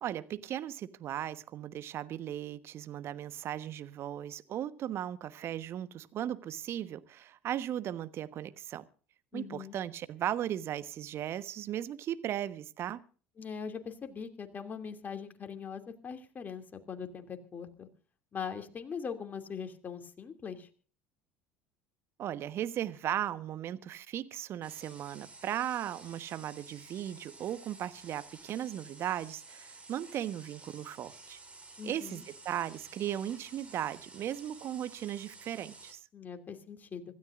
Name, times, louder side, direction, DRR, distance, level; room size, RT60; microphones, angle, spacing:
voice 1, 0.0-8.8 9.3-13.0 22.2-31.4 31.8-36.0, right 11 dB, 45° right, 1.2 m, -37 dB
voice 2, 9.3-9.8 13.4-17.9 18.3-20.7 31.8-32.2 36.1-37.0, left 6 dB, 30° left, 2.7 m, -41 dB
sound 1, 24.6-35.9, right 3 dB, 20° right, 5.5 m, -52 dB
26.0 x 13.5 x 2.6 m
figure-of-eight pair, 65°, 6 cm